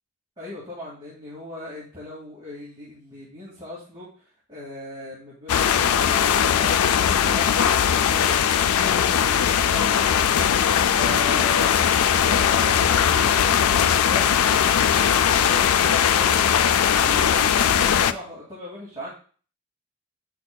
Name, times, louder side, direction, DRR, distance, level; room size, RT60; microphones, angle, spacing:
voice 1, 0.4-19.1, left 1 dB, 20° right, -7 dB, 2.1 m, -39 dB
sound 1, 5.5-18.1, left 8 dB, 90° left, 0.4 m, -19 dB
8.5 x 6.0 x 2.2 m, 0.41 s
head